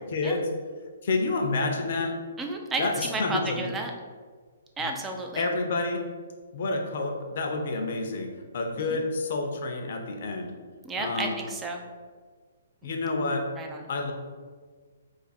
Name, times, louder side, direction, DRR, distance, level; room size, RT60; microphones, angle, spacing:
voice 1, 0.1-0.5 1.0-2.1 2.8-3.7 4.8-4.9 5.4-6.0 6.5-8.3 8.5-10.5 11.0-11.3 12.8-13.5 13.9-14.1, left 3 dB, 50° left, 3 dB, 0.5 m, -29 dB
voice 2, 2.4-3.9 4.8-5.5 8.9-9.0 10.8-11.8 13.5-13.8, right 2 dB, 10° right, 2 dB, 0.3 m, -32 dB
2.5 x 2.5 x 4.0 m, 1.5 s
hypercardioid pair, 165°, 0 cm